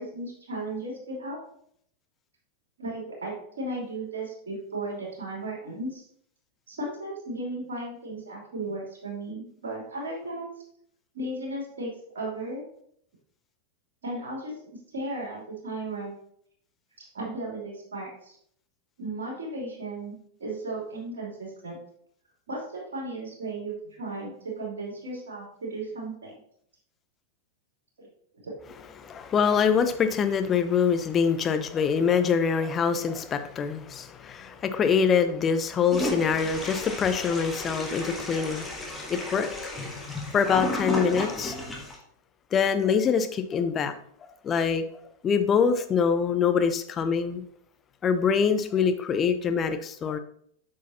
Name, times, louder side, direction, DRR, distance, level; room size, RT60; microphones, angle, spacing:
voice 1, 0.0-1.4 2.8-6.0 6.7-10.5 11.1-12.6 14.0-14.5 14.9-16.1 17.0-18.4 19.0-21.8 22.5-26.3 28.0-28.1 28.4-28.5, right 2 dB, 65° right, -3 dB, 2.9 m, -35 dB
voice 2, 29.0-38.7 39.1-39.5 40.3-41.5 42.5-43.9 44.4-44.8 45.2-47.4 48.0-50.2, left 6 dB, 25° left, 9 dB, 0.7 m, -24 dB
Toilet flush, 35.9-42.0, left 1 dB, 10° left, 1.6 m, -33 dB
8.2 x 6.3 x 2.8 m, 0.66 s
figure-of-eight pair, 90°, 0 cm